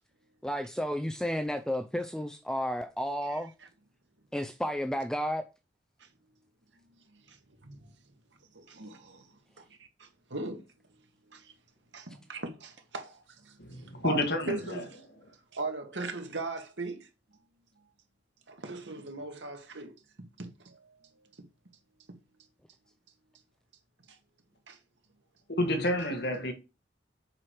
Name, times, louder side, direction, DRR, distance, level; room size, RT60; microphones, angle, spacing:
voice 1, 0.4-3.5 4.3-5.4, equal, 5° left, 0.5 m, -32 dB
voice 2, 3.2-3.7 6.0-6.1 7.1-7.9 8.5-9.7 10.0-10.7 11.3-11.5 11.9-15.1 15.5-17.1 17.8-17.9 18.5-20.0 20.4-21.3 24.1-24.2 24.7-24.8, right 2 dB, 80° right, 2.0 m, -40 dB
voice 3, 13.6-14.8 25.6-26.5, left 1 dB, 60° left, 2.0 m, -29 dB
7.5 x 6.2 x 4.8 m
head